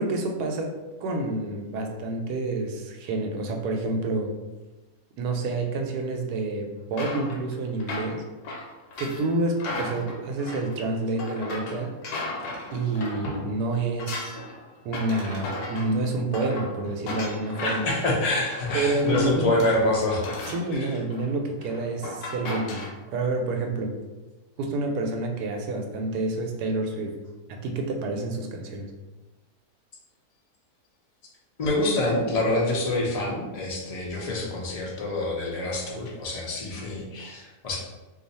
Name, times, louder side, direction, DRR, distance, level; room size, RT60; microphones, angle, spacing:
voice 1, 0.0-4.3 5.2-8.3 9.0-12.0 12.7-14.4 14.8-17.8 18.7-19.5 20.5-22.8 23.1-24.0 24.6-27.2 27.5-28.9, right 2 dB, 90° right, 3 dB, 1.1 m, -28 dB
sound 1, 6.9-13.5 13.8-22.9, left 2 dB, 80° left, 1.2 m, -36 dB
voice 2, 17.6-20.2 20.7-20.9 31.6-37.8, left 2 dB, 50° left, -3 dB, 0.4 m, -26 dB
2.6 x 2.4 x 4.0 m, 1.1 s
omnidirectional pair, 1.6 m